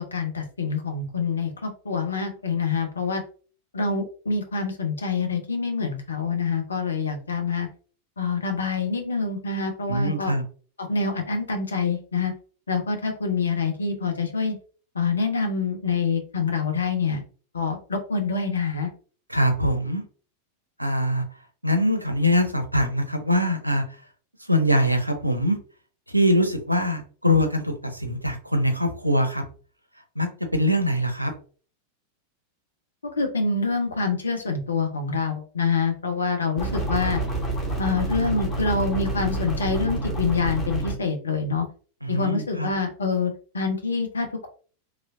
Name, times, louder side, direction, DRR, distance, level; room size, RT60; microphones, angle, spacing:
voice 1, 0.0-3.2 3.7-7.7 8.2-10.3 10.9-12.3 12.7-14.6 14.9-17.2 17.5-18.9 33.0-37.2 37.8-41.6 42.1-44.5, left 4 dB, 75° left, 4 dB, 0.7 m, -26 dB
voice 2, 9.9-10.4 19.3-20.0 20.8-21.2 21.6-23.8 24.5-25.6 26.1-29.4 30.2-31.3 42.0-42.7, equal, 90° right, 7 dB, 0.5 m, -23 dB
sound 1, 36.6-41.0, right 2 dB, 20° left, 1.2 m, -28 dB
3.0 x 2.5 x 2.6 m, 0.40 s
figure-of-eight pair, 90°, 0 cm